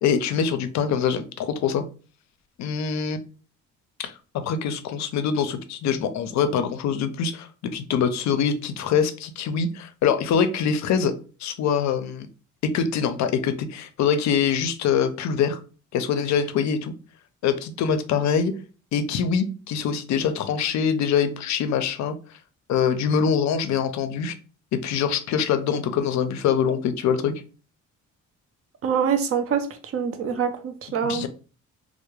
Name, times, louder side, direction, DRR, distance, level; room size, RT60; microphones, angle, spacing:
voice 1, 0.0-1.8 2.6-3.2 4.0-11.1 11.4-12.3 12.6-15.6 15.9-16.9 17.4-18.5 18.9-22.1 22.7-24.3 24.7-27.3 31.0-31.3, left 7 dB, 65° left, 0.4 m, -24 dB
voice 2, 28.8-29.7 29.9-31.3, right 7 dB, 50° right, 0.5 m, -24 dB
2.2 x 2.0 x 3.0 m
cardioid pair, 90°, 30 cm